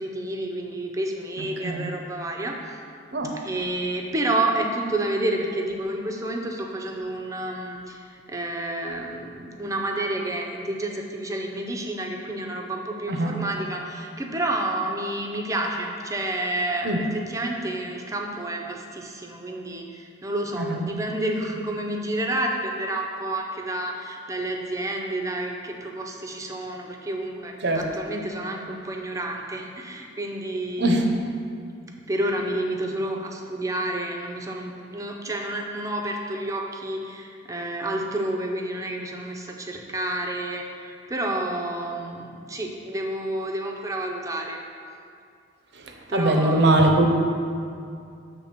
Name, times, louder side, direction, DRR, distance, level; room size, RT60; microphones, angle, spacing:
voice 1, 0.0-2.6 3.4-31.0 32.1-44.6 46.1-46.7, right 1 dB, 15° right, 1 dB, 0.6 m, -29 dB
voice 2, 46.1-47.1, right 1 dB, 60° right, 2 dB, 0.7 m, -21 dB
7.0 x 3.4 x 5.9 m, 2.4 s
head